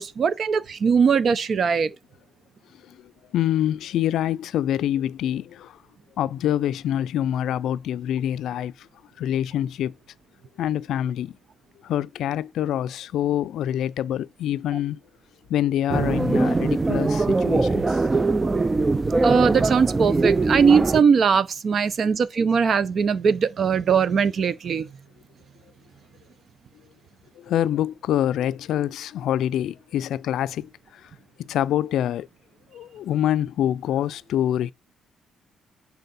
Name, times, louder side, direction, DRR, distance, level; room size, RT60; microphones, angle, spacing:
voice 1, 0.0-1.9 19.2-24.9, right 6 dB, 55° right, 0.8 m, -20 dB
voice 2, 3.3-5.8 6.2-8.9 9.2-9.9 10.6-11.4 11.8-15.0 15.5-18.1 22.0-22.2 27.4-31.1 31.4-32.3 32.7-34.7, left 11 dB, 80° left, 0.4 m, -26 dB
sound 1, 15.9-21.0, right 3 dB, 25° right, 0.4 m, -22 dB
10.5 x 4.0 x 4.2 m
cardioid pair, 90°, 0 cm